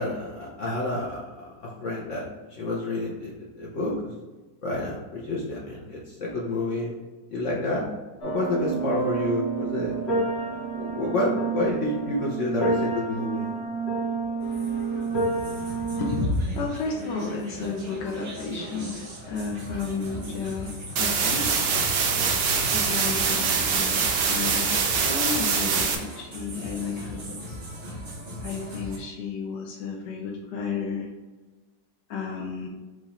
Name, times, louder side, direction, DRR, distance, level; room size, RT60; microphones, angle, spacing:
voice 1, 0.0-4.1 4.6-6.9 7.3-7.9 8.2-10.0 10.5-13.5, left 2 dB, 55° left, -3 dB, 0.9 m, -29 dB
sound 1, 8.2-16.2, right 4 dB, 40° left, 1.3 m, -29 dB
sound 2, 14.4-29.0, equal, 40° right, 1.0 m, -38 dB
voice 2, 16.0-21.5 22.5-27.6 28.4-31.1 32.1-32.7, left 4 dB, 75° left, -2 dB, 1.3 m, -32 dB
sound 3, 21.0-26.0, right 5 dB, 80° right, 1.4 m, -24 dB
4.9 x 2.5 x 4.1 m, 1.2 s
omnidirectional pair, 1.9 m